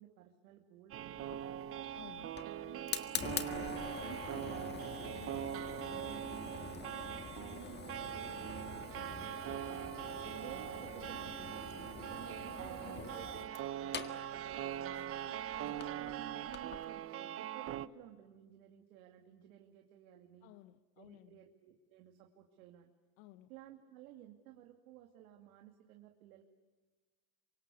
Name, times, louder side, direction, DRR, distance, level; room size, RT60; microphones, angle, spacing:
voice 1, 0.0-1.7 2.2-3.4 4.0-9.7 10.3-15.3 16.0-20.5 21.0-22.9 23.5-26.4, right 12 dB, 85° right, 3 dB, 2.6 m, -56 dB
sound 1, 0.9-17.9, right 11 dB, 35° right, 0.8 m, -42 dB
Fire, 1.2-16.8, left 7 dB, 25° left, 1.7 m, -46 dB
voice 2, 1.9-2.4 12.8-13.1 15.5-15.9 20.4-21.4 23.2-23.5, left 15 dB, 70° left, 12 dB, 1.2 m, -56 dB
27.5 x 25.0 x 8.4 m, 1.3 s
supercardioid pair, 130°, 41 cm